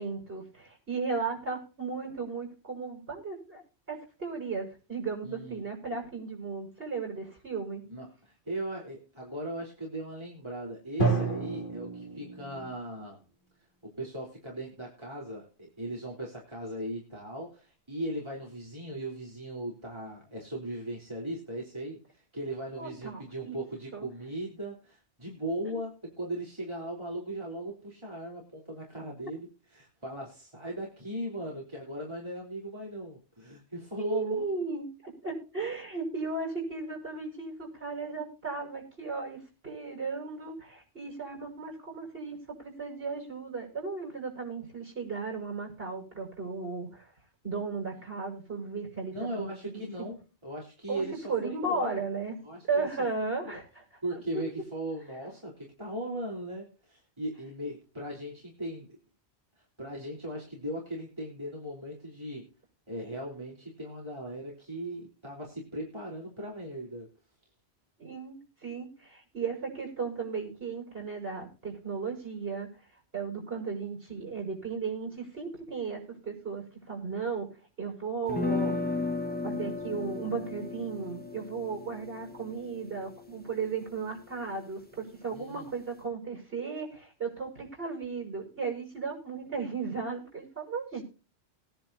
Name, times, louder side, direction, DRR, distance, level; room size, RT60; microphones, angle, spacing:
voice 1, 0.0-3.6 3.9-7.8 22.8-23.6 23.9-24.1 25.7-25.8 34.0-47.1 47.4-49.9 50.9-52.4 52.7-53.8 68.0-72.7 73.1-77.5 77.8-78.8 79.4-91.0, right 4 dB, 60° right, 2 dB, 6.9 m, -35 dB
voice 2, 5.2-5.6 7.9-13.2 13.8-34.5 49.1-52.0 52.4-52.9 53.5-53.6 54.0-59.0 59.8-62.5 62.9-67.1 85.3-85.7, right 1 dB, 25° right, -3 dB, 4.1 m, -38 dB
Drum, 11.0-12.9, right 3 dB, 50° left, 2.8 m, -30 dB
sound 1, 78.3-84.3, left 3 dB, 10° left, 1.4 m, -35 dB
21.5 x 10.5 x 2.8 m, 0.34 s
omnidirectional pair, 1.1 m